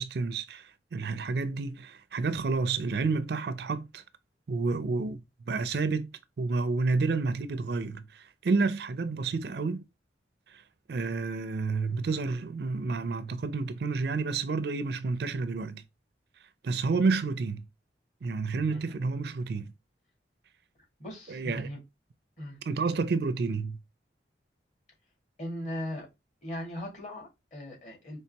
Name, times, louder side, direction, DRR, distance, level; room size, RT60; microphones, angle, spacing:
voice 1, 0.0-4.0 4.5-6.1 6.4-9.8 10.5-10.6 10.9-15.8 16.6-17.6 18.2-19.7 21.3-21.7 22.7-23.8, right 4 dB, 60° right, 0.4 m, -30 dB
voice 2, 21.0-21.8 22.4-22.6 25.4-26.1 26.4-28.2, left 1 dB, 40° left, 2.3 m, -38 dB
4.4 x 3.2 x 2.8 m
head